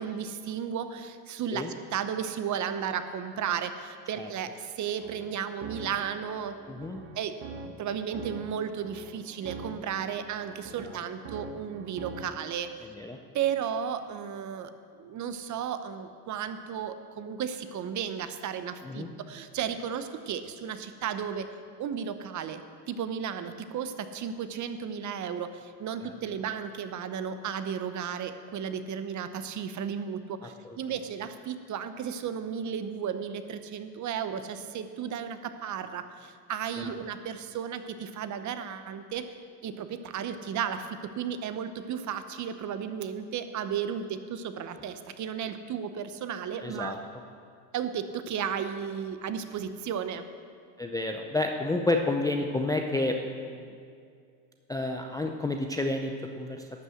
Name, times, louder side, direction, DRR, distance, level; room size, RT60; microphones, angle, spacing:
voice 1, 0.0-1.6 1.9-6.6 7.2-7.3 7.8-12.7 13.3-21.5 21.8-22.6 22.9-39.3 39.6-46.9 47.7-50.3, right 8 dB, 35° right, 10 dB, 0.7 m, -34 dB
sound 1, 4.8-12.5, right 4 dB, 55° right, 1.3 m, -44 dB
voice 2, 6.7-7.0 10.8-11.0 12.9-13.2 18.8-19.1 26.0-26.1 30.4-30.8 36.8-37.0 46.6-47.0 50.8-53.7 54.7-56.7, left 2 dB, 10° left, 3 dB, 0.4 m, -30 dB
12.0 x 5.4 x 7.7 m, 2.3 s
supercardioid pair, 95°, 50 cm